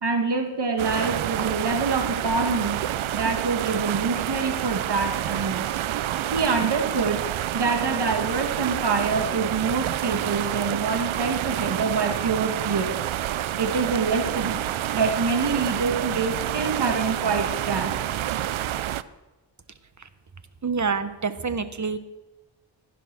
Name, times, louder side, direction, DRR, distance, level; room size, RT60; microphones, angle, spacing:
voice 1, 0.0-2.8 3.1-5.6 6.3-7.2 7.5-13.0 13.6-14.6 14.9-18.0, right 4 dB, 60° right, 4 dB, 2.0 m, -26 dB
sound 1, 0.8-19.0, right 12 dB, 85° right, 0.6 m, -28 dB
voice 2, 20.6-22.0, right 5 dB, 40° right, 11 dB, 1.3 m, -27 dB
15.5 x 10.0 x 6.2 m, 1.1 s
cardioid pair, 60°, 47 cm